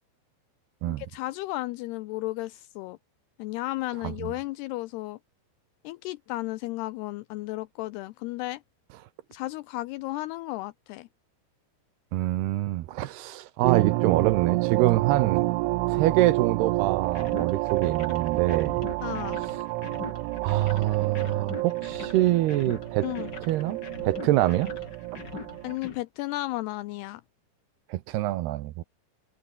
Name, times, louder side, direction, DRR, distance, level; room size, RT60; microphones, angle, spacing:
voice 1, 0.9-3.0 3.4-5.2 5.8-8.6 9.3-11.1 19.0-19.4 23.0-23.3 25.6-27.2, left 18 dB, 85° left, 2.3 m, -34 dB
voice 2, 12.1-15.5 15.9-18.9 20.4-23.1 23.5-23.8 24.0-24.7 27.9-28.8, right 15 dB, 75° right, 2.7 m, -25 dB
sound 1, 13.6-25.8, right 21 dB, 90° right, 3.2 m, -29 dB
sound 2, 17.0-26.0, left 5 dB, 35° left, 1.8 m, -43 dB
omnidirectional pair, 5.4 m